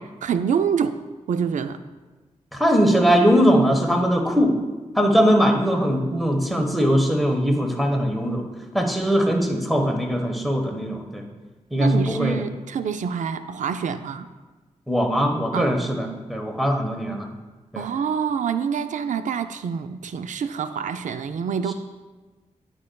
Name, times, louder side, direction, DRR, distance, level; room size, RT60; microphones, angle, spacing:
voice 1, 0.2-1.0 1.3-1.8 11.8-14.3 15.5-15.8 17.8-21.7, right 7 dB, 80° right, 10 dB, 0.4 m, -26 dB
voice 2, 2.5-4.5 4.9-8.4 8.7-11.2 11.7-12.4 14.9-17.3 17.7-17.9, equal, ahead, 1 dB, 1.1 m, -20 dB
9.4 x 5.1 x 2.3 m, 1.3 s
cardioid pair, 65°, 13 cm